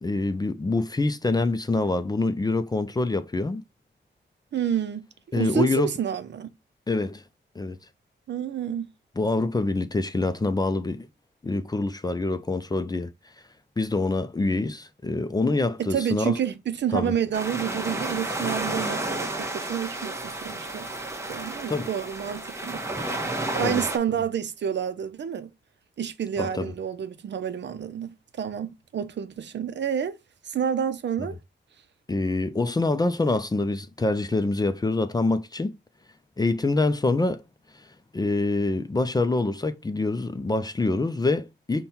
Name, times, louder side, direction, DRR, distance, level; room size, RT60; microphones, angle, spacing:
voice 1, 0.0-3.6 5.3-5.9 6.9-7.2 7.6-7.8 9.2-11.1 11.4-13.1 13.8-16.4 16.9-17.1 21.7-21.9 23.6-23.8 26.4-26.7 32.1-35.7 36.4-37.4 38.1-41.9, left 2 dB, 20° left, 0.4 m, -25 dB
voice 2, 4.5-5.0 5.3-6.5 8.3-8.9 15.8-20.9 21.3-22.8 23.5-25.5 26.0-30.2 30.4-31.4, right 8 dB, 65° right, 0.6 m, -29 dB
sound 1, 17.3-24.0, right 2 dB, 15° right, 0.9 m, -31 dB
5.3 x 2.3 x 4.2 m
cardioid pair, 80°, 20 cm